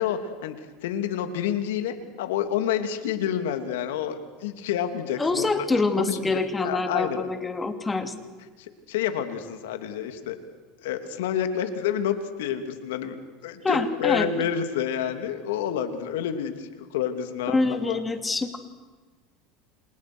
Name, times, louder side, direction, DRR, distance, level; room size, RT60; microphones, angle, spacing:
voice 1, 0.0-7.2 8.6-10.4 10.8-13.2 13.4-18.0, left 9 dB, 85° left, 8 dB, 3.0 m, -29 dB
voice 2, 5.2-8.1 13.6-14.3 17.5-18.6, left 3 dB, 15° left, 7 dB, 2.7 m, -25 dB
30.0 x 27.0 x 6.4 m, 1.4 s
supercardioid pair, 125°, 0 cm